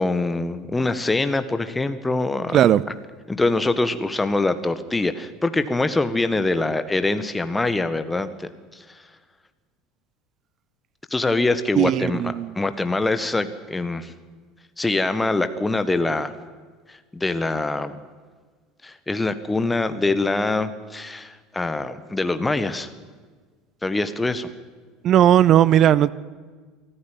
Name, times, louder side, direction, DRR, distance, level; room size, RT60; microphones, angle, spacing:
voice 1, 0.0-2.6 3.3-8.8 11.1-12.2 12.5-14.1 14.8-16.3 16.9-18.0 18.8-22.9 23.8-24.5, left 2 dB, 10° left, 1.7 m, -24 dB
voice 2, 11.8-12.5 25.0-26.1, right 11 dB, 40° right, 0.7 m, -16 dB
25.0 x 14.5 x 9.1 m
figure-of-eight pair, 70°, 0 cm